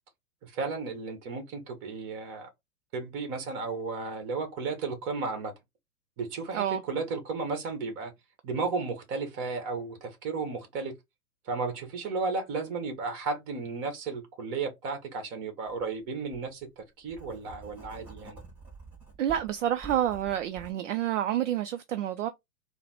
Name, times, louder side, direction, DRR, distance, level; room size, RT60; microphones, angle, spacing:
voice 1, 0.4-2.5 2.9-5.5 6.2-8.1 8.4-10.9 11.4-18.4, right 4 dB, 35° right, 1.5 m, -34 dB
Writing, 15.7-15.8 16.3-20.7, right 4 dB, 5° right, 0.4 m, -48 dB
voice 2, 19.2-22.3, right 11 dB, 55° right, 0.6 m, -28 dB
4.0 x 2.2 x 3.9 m
figure-of-eight pair, 110°, 44 cm